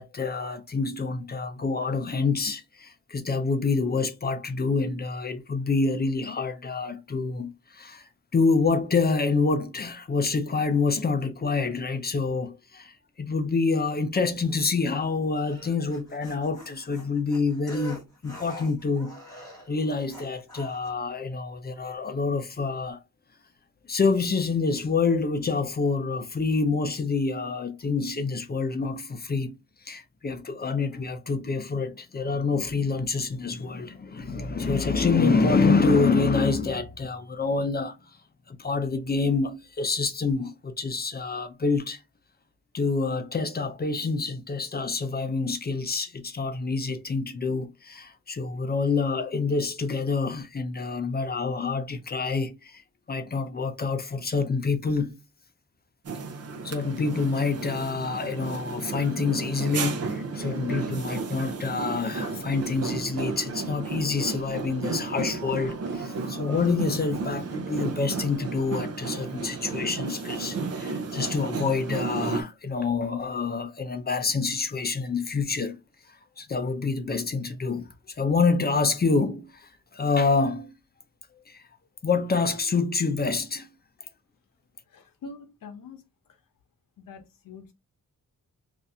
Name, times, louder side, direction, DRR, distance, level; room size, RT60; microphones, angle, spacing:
voice 1, 0.0-19.2 19.7-23.0 23.9-29.6 29.8-38.0 38.5-42.0 42.7-52.8 53.1-55.2 56.6-75.8 76.4-80.7 81.5-81.6 82.0-83.7, left 4 dB, 30° left, 0.4 m, -27 dB
sound 1, 15.4-20.9, left 1 dB, 10° left, 1.3 m, -45 dB
sound 2, 56.0-72.4, right 4 dB, 45° right, 0.6 m, -33 dB
voice 2, 84.9-86.4 87.0-87.7, left 4 dB, 80° left, 0.8 m, -45 dB
2.7 x 2.5 x 3.4 m
wide cardioid pair, 140°, 33 cm